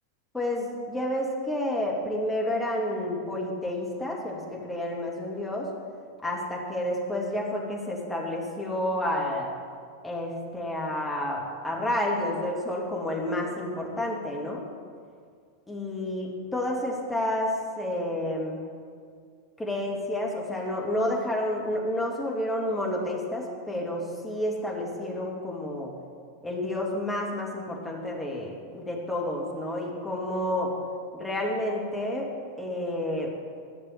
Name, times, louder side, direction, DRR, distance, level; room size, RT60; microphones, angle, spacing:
voice 1, 0.3-5.7 6.2-9.5 10.0-14.6 15.7-18.6 19.6-25.9 26.4-30.7 31.1-32.3 32.6-33.3, left 1 dB, 10° left, -2 dB, 2.6 m, -30 dB
11.5 x 6.7 x 8.9 m, 2.1 s
figure-of-eight pair, 90°, 0 cm